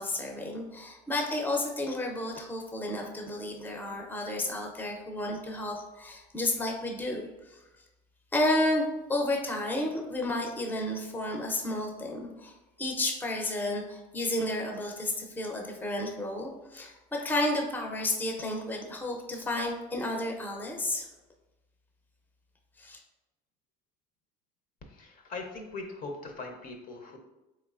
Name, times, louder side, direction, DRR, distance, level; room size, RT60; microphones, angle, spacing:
voice 1, 0.0-7.8 8.3-21.1 22.8-23.0, left 1 dB, 10° left, 1 dB, 0.6 m, -32 dB
voice 2, 24.8-27.2, left 3 dB, 45° left, 3 dB, 0.7 m, -41 dB
3.5 x 3.1 x 2.4 m, 1.0 s
supercardioid pair, 85°, 19 cm